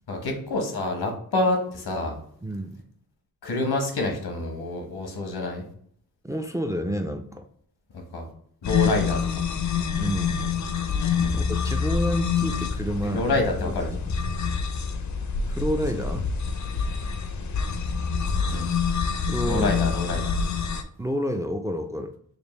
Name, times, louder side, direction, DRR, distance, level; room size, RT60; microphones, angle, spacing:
voice 1, 0.1-2.2 3.4-5.6 7.9-8.3 8.6-9.2 11.2-11.4 13.0-13.9 18.5-18.8 19.4-20.3, left 2 dB, 85° left, 2 dB, 1.0 m, -27 dB
voice 2, 2.4-2.8 6.2-7.5 10.0-10.4 11.3-13.2 13.7-13.8 15.5-16.3 19.2-19.8 21.0-22.1, equal, 10° right, 7 dB, 0.3 m, -29 dB
sound 1, 8.6-20.8, left 6 dB, 50° left, 0.5 m, -26 dB
5.1 x 2.2 x 3.1 m, 0.63 s
cardioid pair, 65°, 37 cm